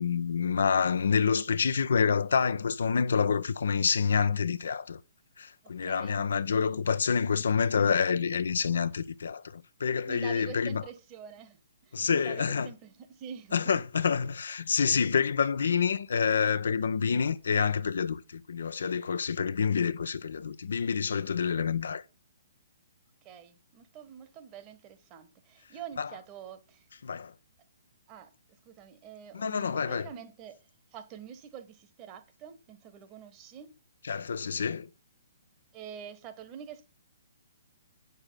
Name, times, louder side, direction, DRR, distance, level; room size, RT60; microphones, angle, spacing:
voice 1, 0.0-5.0 5.4-10.8 11.9-12.7 13.5-22.0 26.0-26.1 27.0-27.3 29.3-30.1 34.0-34.9, left 6 dB, 60° left, 0.5 m, -27 dB
voice 2, 5.8-6.2 10.1-13.8 23.2-26.9 28.1-28.3 28.6-30.6 30.9-33.7 35.7-36.8, right 8 dB, 25° right, 1.2 m, -46 dB
8.8 x 6.7 x 5.6 m
figure-of-eight pair, 125°, 0 cm